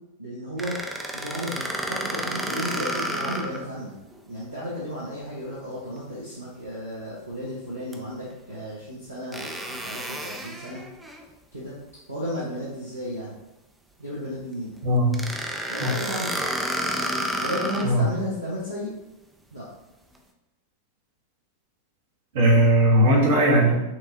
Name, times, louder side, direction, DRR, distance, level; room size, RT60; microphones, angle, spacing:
voice 1, 0.2-0.8 1.1-3.9 4.3-10.8 11.5-11.7 12.1-13.4 14.0-14.7 15.7-16.4 17.4-18.9 19.5-19.7, equal, 80° right, -8 dB, 0.9 m, -33 dB
sound 1, 0.6-3.7 4.1-4.2 7.9-8.0 9.3-11.2 15.1-18.0, right 1 dB, 10° right, 0.4 m, -30 dB
voice 2, 14.8-15.3 15.8-16.0 17.8-18.1 22.3-23.8, right 1 dB, 55° right, -1 dB, 1.0 m, -19 dB
5.8 x 2.3 x 2.7 m, 0.94 s
figure-of-eight pair, 90°, 0 cm